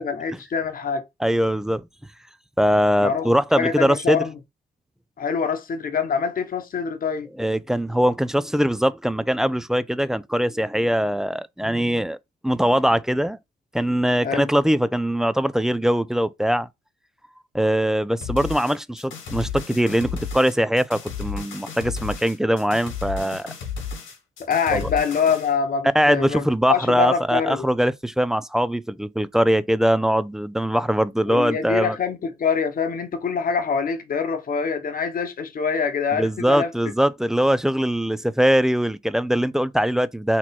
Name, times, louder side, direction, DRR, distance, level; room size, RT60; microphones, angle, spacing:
voice 1, 0.0-1.0 3.0-4.3 5.2-7.3 14.2-14.5 24.4-27.7 31.3-36.7, left 6 dB, 45° left, 1.1 m, -25 dB
voice 2, 1.2-1.9 2.6-4.2 7.4-12.2 12.4-13.4 13.7-16.7 17.5-23.5 24.7-24.9 25.9-32.0 36.1-40.4, equal, ahead, 0.3 m, -21 dB
sound 1, 18.2-25.5, left 5 dB, 80° left, 2.2 m, -33 dB
4.2 x 3.0 x 4.1 m
cardioid pair, 90°, 20 cm